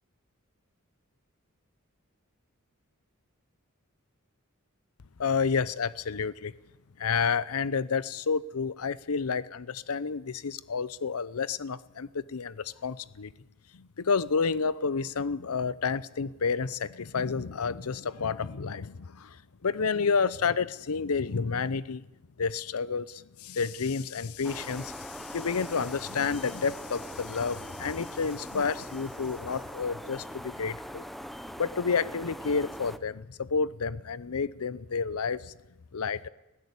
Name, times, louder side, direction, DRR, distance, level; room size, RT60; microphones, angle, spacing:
voice 1, 5.2-6.5 7.0-13.3 13.7-22.0 22.4-31.0 31.6-35.5 35.9-36.3, left 5 dB, 85° left, 18 dB, 0.7 m, -30 dB
sound 1, 24.4-33.0, equal, ahead, 0.7 m, -41 dB
20.5 x 15.5 x 8.3 m, 0.98 s
head